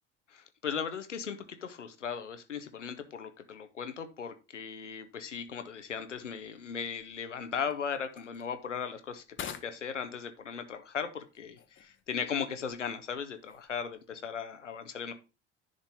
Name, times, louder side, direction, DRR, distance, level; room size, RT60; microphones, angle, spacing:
voice 1, 0.3-15.1, left 7 dB, 85° left, 9 dB, 0.8 m, -37 dB
sound 1, 5.0-14.2, left 8 dB, 35° left, 1.2 m, -52 dB
10.5 x 4.0 x 5.2 m, 0.31 s
figure-of-eight pair, 60°, 35 cm